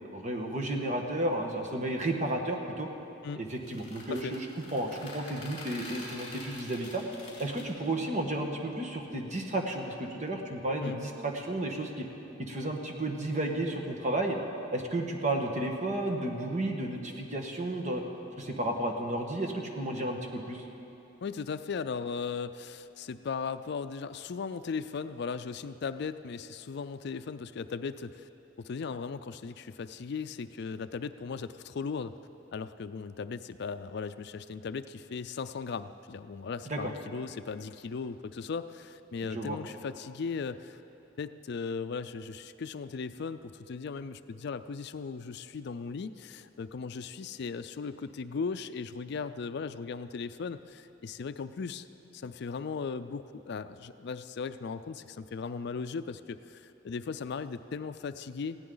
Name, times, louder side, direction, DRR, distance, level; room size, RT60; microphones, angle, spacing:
voice 1, 0.1-2.9 3.4-4.5 4.7-7.0 7.4-12.0 12.4-14.4 14.7-18.0 18.4-20.6 36.7-36.9 39.2-39.6, right 1 dB, 40° right, 2 dB, 1.4 m, -32 dB
sound 1, 3.5-7.7, left 2 dB, 35° left, 4.3 m, -45 dB
voice 2, 21.2-28.3 28.6-32.1 32.5-40.8 41.2-51.9 52.1-58.6, left 5 dB, 60° left, 12 dB, 0.4 m, -37 dB
19.5 x 15.5 x 3.9 m, 2.9 s
head